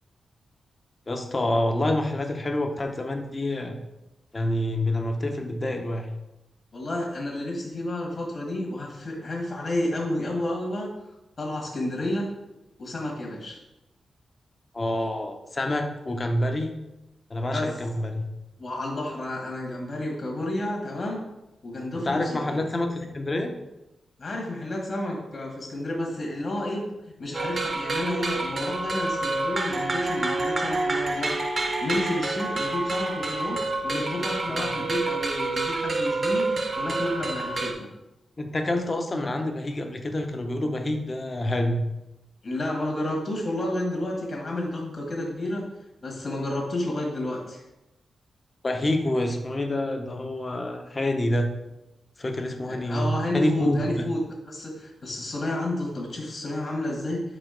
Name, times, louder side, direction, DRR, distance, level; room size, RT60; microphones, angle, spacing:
voice 1, 1.1-3.8 4.3-6.1 14.7-16.7 17.3-18.2 22.1-23.5 34.0-34.1 34.5-34.8 38.4-41.8 48.6-51.5 52.2-54.1, left 1 dB, 25° left, 5 dB, 0.7 m, -27 dB
voice 2, 6.7-10.9 11.4-12.3 12.8-13.6 17.5-17.9 18.6-21.2 21.6-22.6 24.2-31.3 31.6-37.9 42.4-45.7 46.0-47.6 52.7-57.2, left 1 dB, 45° left, -1 dB, 1.5 m, -31 dB
sound 1, 27.3-37.7, right 2 dB, 35° right, 0.7 m, -28 dB
5.1 x 4.9 x 3.8 m, 0.95 s
wide cardioid pair, 125°, 0 cm